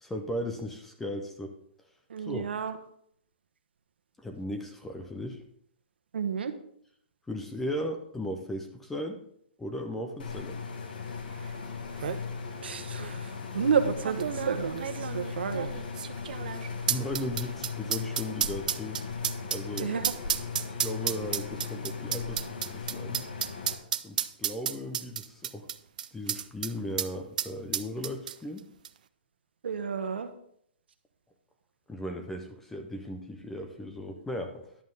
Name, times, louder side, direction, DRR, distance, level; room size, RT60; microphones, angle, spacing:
voice 1, 0.0-1.5 2.2-2.5 4.2-5.4 7.3-9.2 9.6-10.6 16.9-19.0 19.5-20.0 20.7-23.2 24.0-25.7 26.1-28.7 31.9-34.8, left 1 dB, 5° left, 4 dB, 0.5 m, -36 dB
voice 2, 2.1-2.7 6.1-6.5 12.6-13.3 13.5-15.7 19.8-20.1 29.6-30.3, right 6 dB, 70° right, 8 dB, 1.1 m, -30 dB
sound 1, 10.2-23.7, left 5 dB, 55° left, 1.6 m, -38 dB
sound 2, 11.5-11.6 11.8-12.2 13.0-13.1 14.0-26.7 27.0-27.1 27.4-28.6 28.8-28.9, right 9 dB, 50° right, 0.5 m, -32 dB
11.0 x 7.6 x 3.8 m, 0.68 s
hypercardioid pair, 170°, 6 cm